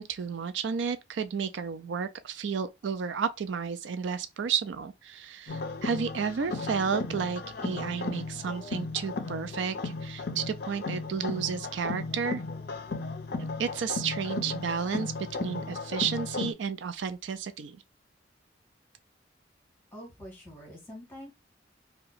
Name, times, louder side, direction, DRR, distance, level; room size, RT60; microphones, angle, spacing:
voice 1, 0.0-12.4 13.6-15.1 15.4-17.8, right 6 dB, 80° right, 0.4 m, -32 dB
sound 1, 5.5-16.5, left 3 dB, 55° left, 0.5 m, -35 dB
voice 2, 19.9-21.3, equal, 10° left, 1.4 m, -45 dB
2.8 x 2.2 x 3.8 m
head